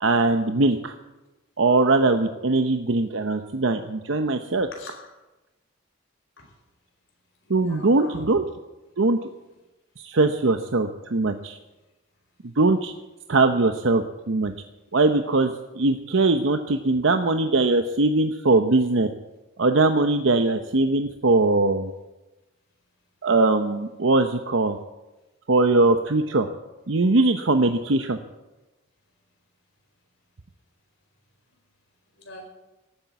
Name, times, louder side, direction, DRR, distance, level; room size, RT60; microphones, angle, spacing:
voice 1, 0.0-0.9 1.6-4.7 7.5-8.4 9.0-9.2 10.0-11.6 12.6-12.9 13.3-14.5 14.9-19.1 19.6-21.9 23.2-24.8 25.5-26.5 26.9-28.2, right 3 dB, 70° right, 7 dB, 0.8 m, -21 dB
voice 2, 4.7-5.1 6.4-6.5 7.5-8.2 32.2-32.5, left 1 dB, 70° left, 2 dB, 4.7 m, -42 dB
18.0 x 9.0 x 8.1 m, 1.1 s
head